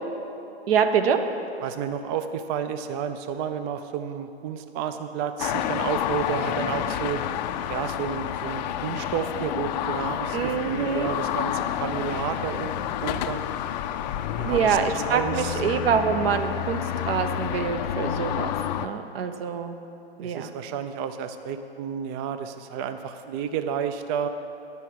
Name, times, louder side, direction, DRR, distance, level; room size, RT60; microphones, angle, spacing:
voice 1, 0.7-1.2 10.3-11.2 14.4-19.8 20.2-20.5, right 7 dB, 65° right, 7 dB, 1.0 m, -25 dB
voice 2, 1.6-7.2 7.7-12.7 13.0-13.4 14.4-14.8 15.0-15.6 20.2-24.3, right 8 dB, 25° right, 9 dB, 0.4 m, -31 dB
sound 1, 5.4-18.9, left 10 dB, 45° left, 0.5 m, -29 dB
10.0 x 6.2 x 8.5 m, 2.8 s
hypercardioid pair, 130°, 32 cm